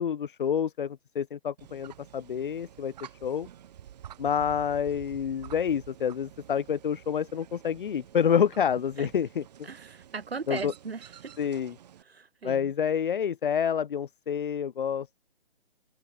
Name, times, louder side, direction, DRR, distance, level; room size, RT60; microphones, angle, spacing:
voice 1, 0.0-3.5 4.2-9.4 10.5-10.7 11.4-11.7 12.4-15.2, left 8 dB, 55° left, 1.1 m, -28 dB
sound 1, 1.6-12.0, right 10 dB, 40° right, 3.9 m, -49 dB
voice 2, 9.6-11.3 12.0-12.7, right 5 dB, 75° right, 3.0 m, -38 dB
open air
figure-of-eight pair, 145°, 31 cm